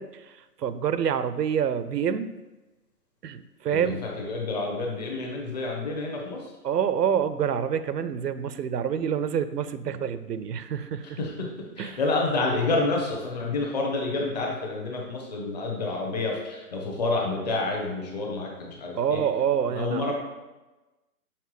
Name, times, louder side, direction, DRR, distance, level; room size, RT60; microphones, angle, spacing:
voice 1, 0.0-2.4 3.2-4.0 6.6-11.2 11.8-12.0 18.9-20.1, right 8 dB, 90° right, 13 dB, 0.6 m, -27 dB
voice 2, 3.7-6.5 11.0-11.5 11.8-19.2 19.7-20.1, left 3 dB, 25° left, 0 dB, 1.0 m, -29 dB
5.8 x 5.5 x 3.1 m, 1.1 s
hypercardioid pair, 155°, 47 cm